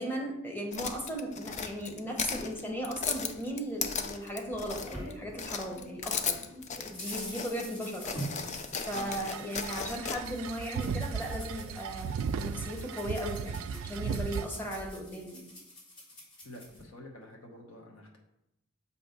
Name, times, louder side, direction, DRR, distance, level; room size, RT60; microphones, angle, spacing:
voice 1, 0.0-6.4 6.8-8.2 8.4-15.5, equal, 10° left, 0 dB, 1.0 m, -37 dB
sound 1, 0.7-5.1 5.4-7.7 8.0-10.2, left 6 dB, 35° left, 0.4 m, -36 dB
sound 2, 4.1-5.9 6.3-16.8, equal, 60° left, 2.3 m, -46 dB
sound 3, 8.8-14.5, right 6 dB, 70° right, 0.3 m, -36 dB
voice 2, 8.9-9.6 16.4-18.2, left 1 dB, 80° left, 0 dB, 1.0 m, -48 dB
6.9 x 2.8 x 5.2 m, 0.85 s
head